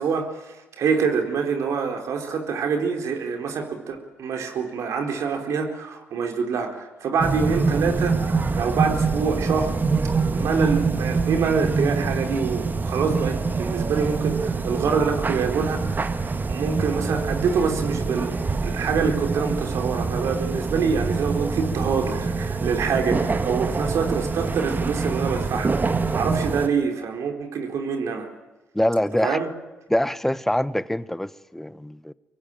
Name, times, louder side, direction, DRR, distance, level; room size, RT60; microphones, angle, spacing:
voice 1, 0.0-8.2 8.5-9.8 10.3-16.2 16.4-28.3 29.2-29.5, right 5 dB, 65° right, 4 dB, 4.3 m, -26 dB
sound 1, 7.2-26.7, right 4 dB, 35° right, 1.8 m, -25 dB
voice 2, 28.7-29.4 29.9-32.1, left 1 dB, 5° left, 15 dB, 1.2 m, -24 dB
25.0 x 23.0 x 9.0 m, 1.1 s
hypercardioid pair, 50°, 5 cm